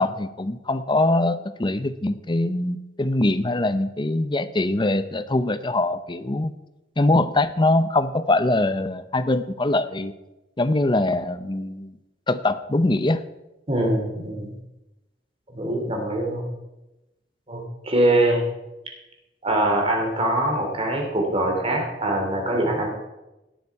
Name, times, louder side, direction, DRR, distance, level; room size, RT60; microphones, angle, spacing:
voice 1, 0.0-6.5 7.0-10.1 10.6-12.0 12.3-13.2, left 2 dB, 25° left, 11 dB, 0.7 m, -23 dB
voice 2, 13.7-14.5 15.5-16.4 17.5-18.4 19.4-22.9, right 1 dB, 35° right, 1 dB, 3.0 m, -23 dB
17.5 x 9.7 x 4.7 m, 0.99 s
head